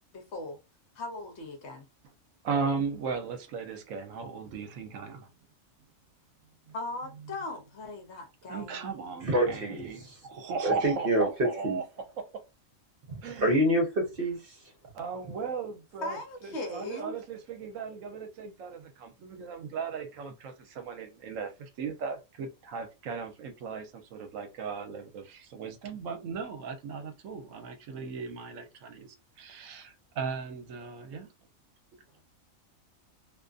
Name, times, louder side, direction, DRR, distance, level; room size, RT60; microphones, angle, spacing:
voice 1, 0.1-0.6 0.9-1.9 6.7-9.1 16.0-17.2, left 2 dB, 60° left, 0.9 m, -39 dB
voice 2, 2.4-5.3 8.5-11.8 12.2-12.4 13.2-13.5 14.9-16.2 16.4-29.1 29.4-31.3, right 5 dB, 75° right, 0.9 m, -37 dB
voice 3, 9.2-9.9 10.6-11.8 13.4-14.4, right 1 dB, 50° right, 0.8 m, -26 dB
2.5 x 2.4 x 2.3 m
omnidirectional pair, 1.4 m